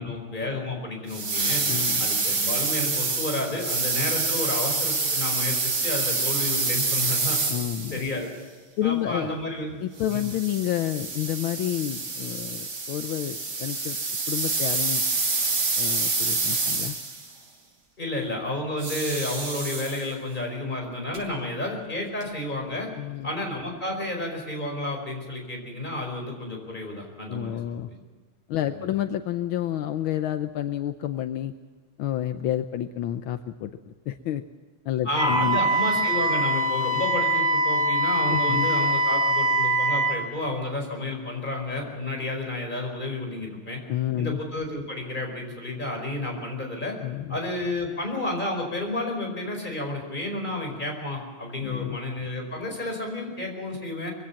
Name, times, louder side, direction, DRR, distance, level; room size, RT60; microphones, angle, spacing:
voice 1, 0.0-1.6 2.0-7.4 7.9-8.3 8.8-9.8 10.1-10.2 18.0-22.9 23.2-27.9 28.6-28.9 35.0-43.8 44.2-47.0 47.3-54.1, left 1 dB, 20° left, 1 dB, 5.1 m, -31 dB
sound 1, 1.1-8.1 10.0-17.3, right 3 dB, 50° right, 3.2 m, -27 dB
voice 2, 1.7-2.1 7.5-8.0 8.8-9.4 9.8-14.0 14.3-15.0 15.8-17.0 23.0-23.3 27.3-27.9 28.5-31.5 32.0-34.4 34.8-35.6 38.3-38.7 43.9-44.4 47.0-47.4 51.6-52.0, left 12 dB, 80° left, 9 dB, 1.6 m, -29 dB
sound 2, 18.8-20.4 21.1-21.2 21.6-21.7 22.0-22.6, right 3 dB, 80° right, 5.5 m, -35 dB
Wind instrument woodwind instrument, 35.1-40.2, right 1 dB, 15° right, 3.2 m, -23 dB
22.0 x 16.5 x 7.1 m, 1.5 s
omnidirectional pair, 2.3 m